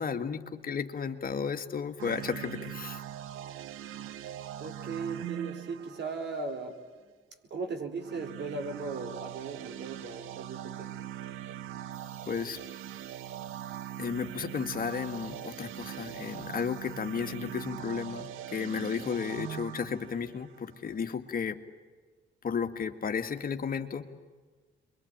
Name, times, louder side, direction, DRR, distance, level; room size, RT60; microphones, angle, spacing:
voice 1, 0.0-3.0 12.3-12.6 14.0-21.6 22.4-24.1, left 6 dB, 45° left, 6 dB, 2.1 m, -33 dB
sound 1, 2.0-6.8 8.0-21.1, right 12 dB, 90° right, 1.0 m, -42 dB
voice 2, 4.6-6.8 7.5-10.9, right 4 dB, 60° right, 6 dB, 4.6 m, -37 dB
sound 2, 11.9-17.7, equal, 35° right, 6.4 m, -59 dB
28.0 x 23.0 x 9.0 m, 1.4 s
cardioid pair, 90°, 20 cm